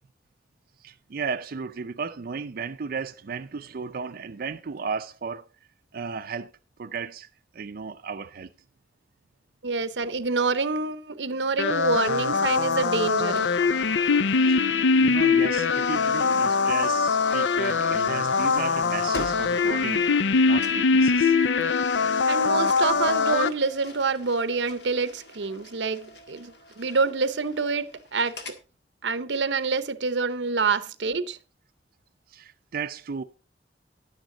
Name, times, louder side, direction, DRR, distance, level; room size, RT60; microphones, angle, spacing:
voice 1, 0.8-5.5 5.9-6.5 6.8-7.3 7.5-8.5 14.3-21.4 32.3-33.2, right 5 dB, 55° right, 0.5 m, -35 dB
voice 2, 9.6-13.5 22.3-28.4 29.0-31.4, right 4 dB, 90° right, 0.8 m, -27 dB
sound 1, 11.6-23.5, left 4 dB, 85° left, 0.5 m, -22 dB
sound 2, 13.4-20.3 20.6-20.9 22.7-28.6, left 2 dB, 70° left, 1.8 m, -45 dB
11.0 x 9.2 x 3.8 m
head